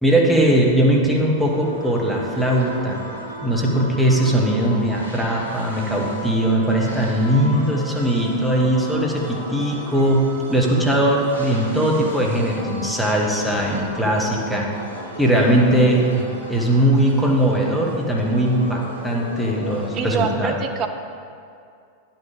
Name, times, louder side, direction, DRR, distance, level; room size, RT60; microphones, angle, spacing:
voice 1, 0.0-3.0 3.4-10.2 10.5-14.7 15.2-20.6, right 1 dB, ahead, -3 dB, 1.5 m, -19 dB
sound 1, 1.4-20.2, right 1 dB, 75° right, 1.5 m, -36 dB
voice 2, 19.9-20.9, right 6 dB, 35° right, 6 dB, 0.7 m, -24 dB
10.0 x 5.9 x 5.2 m, 2.4 s
figure-of-eight pair, 90°, 0 cm